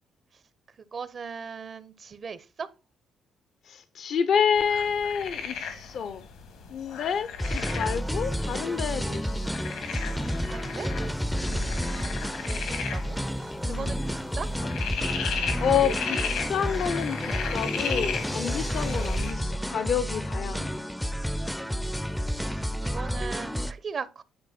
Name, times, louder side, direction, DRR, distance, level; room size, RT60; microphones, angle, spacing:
voice 1, 0.9-2.7 10.4-10.9 12.3-14.5 21.5-24.2, right 5 dB, 45° right, 0.6 m, -39 dB
voice 2, 3.7-6.2 6.7-9.5 11.5-11.8 13.6-14.0 15.1-20.7, left 7 dB, 65° left, 0.5 m, -29 dB
sound 1, 4.6-19.3, left 6 dB, 90° left, 2.0 m, -36 dB
sound 2, 7.4-23.7, equal, ahead, 0.4 m, -30 dB
9.3 x 4.4 x 4.2 m
cardioid pair, 90°, 0 cm